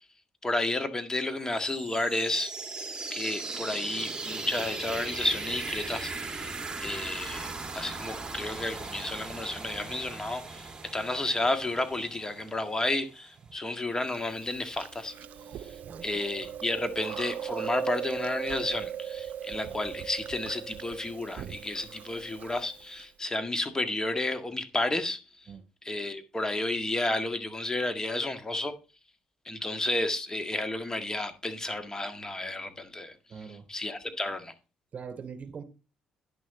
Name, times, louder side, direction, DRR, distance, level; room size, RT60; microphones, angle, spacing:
voice 1, 0.4-2.5 3.1-15.1 15.6-15.8 16.0-25.2 25.8-28.7 29.5-33.2 33.7-34.5, left 2 dB, 20° left, 1.8 m, -32 dB
sound 1, 1.4-13.1, right 3 dB, 25° right, 2.2 m, -38 dB
Chewing mastication, 14.1-23.0, right 10 dB, 65° right, 0.6 m, -39 dB
voice 2, 33.3-33.7 34.9-35.6, right 6 dB, 45° right, 3.2 m, -42 dB
10.5 x 6.4 x 4.2 m
supercardioid pair, 60°, 3 cm